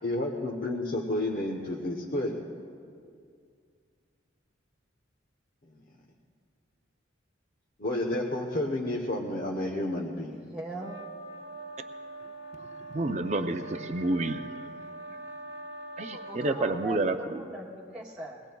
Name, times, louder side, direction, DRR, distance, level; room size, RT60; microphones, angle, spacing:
voice 1, 0.0-2.4 7.8-10.3, left 1 dB, 45° left, -1 dB, 0.9 m, -30 dB
voice 2, 10.3-11.0 16.0-18.4, right 2 dB, 5° right, -7 dB, 0.9 m, -40 dB
sound 1, 10.7-17.0, right 2 dB, 75° right, 1.3 m, -43 dB
voice 3, 12.5-14.6 16.0-17.4, right 2 dB, 35° right, 8 dB, 0.5 m, -30 dB
22.0 x 19.0 x 2.3 m, 2.2 s
head